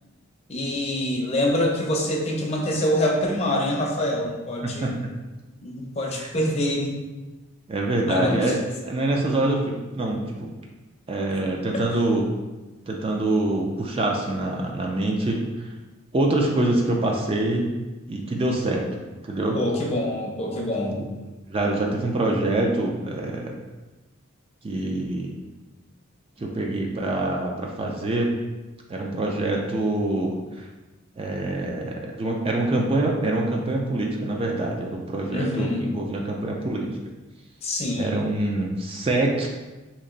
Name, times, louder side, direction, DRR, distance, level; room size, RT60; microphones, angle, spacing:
voice 1, 0.5-5.0 5.6-6.9 8.1-8.5 11.7-11.8 19.5-21.0 35.3-35.9 37.6-38.3, left 1 dB, 30° left, -2 dB, 0.5 m, -25 dB
voice 2, 7.7-10.5 11.1-12.3 12.9-15.4 16.1-17.7 18.1-18.9 19.2-19.6 20.9-21.0 21.5-23.6 24.6-25.3 26.4-28.3 28.9-30.7 31.2-36.9 38.0-39.5, right 2 dB, 25° right, 0 dB, 0.3 m, -25 dB
3.0 x 2.5 x 3.8 m, 1.2 s
head